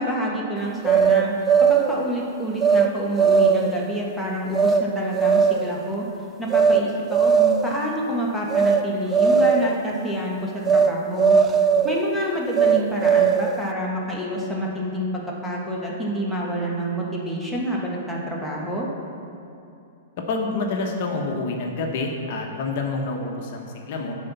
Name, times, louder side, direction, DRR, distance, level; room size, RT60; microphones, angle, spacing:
voice 1, 0.0-1.3 1.7-6.1 6.4-11.4 11.8-18.9, equal, ahead, -5 dB, 1.5 m, -28 dB
sound 1, 0.8-1.9 2.6-2.9 3.2-3.8 4.5-4.8 5.1-5.7 6.5-6.8 7.1-7.7 8.5-8.8 9.1-9.7 10.7-10.9 11.2-12.0 12.5-13.6, right 6 dB, 25° right, 0.4 m, -18 dB
voice 2, 20.3-24.2, left 3 dB, 55° left, 1 dB, 1.1 m, -27 dB
9.7 x 4.4 x 6.9 m, 2.7 s
hypercardioid pair, 130°, 0 cm